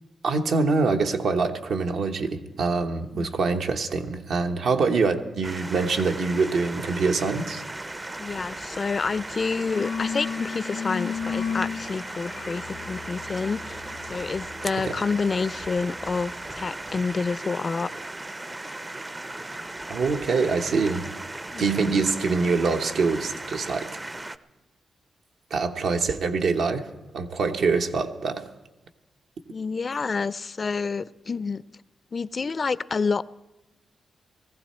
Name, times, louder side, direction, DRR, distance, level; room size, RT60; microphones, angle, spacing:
voice 1, 0.2-7.6 8.0-8.2 14.9-15.0 19.5-19.6 19.9-21.1 21.6-23.9 25.5-26.9 27.1-28.5, right 4 dB, 75° right, 5 dB, 1.1 m, -25 dB
sound 1, 5.4-24.4, right 2 dB, 20° right, 0.5 m, -37 dB
voice 2, 8.2-17.9 21.5-21.9 29.5-31.6 32.1-33.2, left 4 dB, 45° left, 18 dB, 0.4 m, -28 dB
sound 2, 8.9-9.1 9.4-16.0, left 6 dB, 80° left, 0.7 m, -35 dB
19.0 x 15.0 x 4.3 m, 1.0 s
cardioid pair, 75°, 0 cm